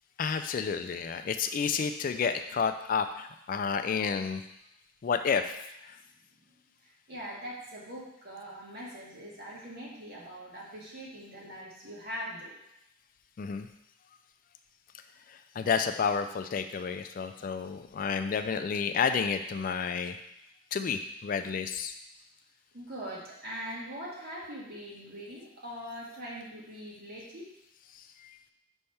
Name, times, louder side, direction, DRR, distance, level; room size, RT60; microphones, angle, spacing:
voice 1, 0.2-4.4 5.0-5.6 5.8-6.0 13.4-13.7 15.3-20.2 20.7-22.0 27.9-28.4, left 6 dB, 45° left, 8 dB, 0.3 m, -30 dB
voice 2, 7.1-12.5 17.4-17.5 22.7-27.5, equal, 55° right, -5 dB, 1.7 m, -42 dB
5.3 x 3.4 x 5.7 m, 0.80 s
head